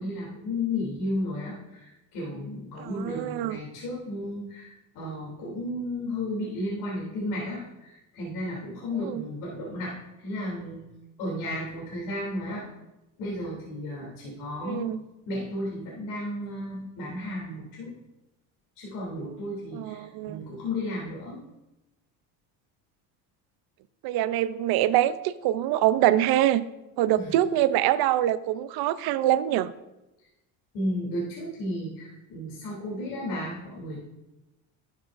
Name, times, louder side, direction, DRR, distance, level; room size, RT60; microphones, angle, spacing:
voice 1, 0.0-10.8 11.2-12.6 13.2-14.9 15.3-17.9 18.8-21.4 27.1-27.3 30.7-34.0, left 1 dB, 70° left, -5 dB, 3.0 m, -33 dB
voice 2, 2.8-3.6 9.0-9.3 14.6-15.0 19.7-20.4 24.0-26.7 27.0-29.7, right 13 dB, 65° right, 16 dB, 0.6 m, -24 dB
11.5 x 7.4 x 2.6 m, 0.97 s
supercardioid pair, 95°, 41 cm